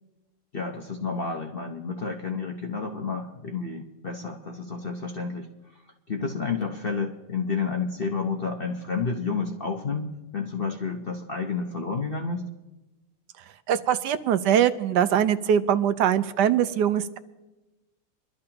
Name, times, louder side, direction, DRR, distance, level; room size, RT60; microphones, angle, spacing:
voice 1, 0.5-5.5 6.1-12.5, left 4 dB, 45° left, 2 dB, 0.8 m, -30 dB
voice 2, 13.7-17.2, right 9 dB, 75° right, 12 dB, 1.2 m, -22 dB
23.5 x 12.0 x 2.9 m, 1.1 s
omnidirectional pair, 1.9 m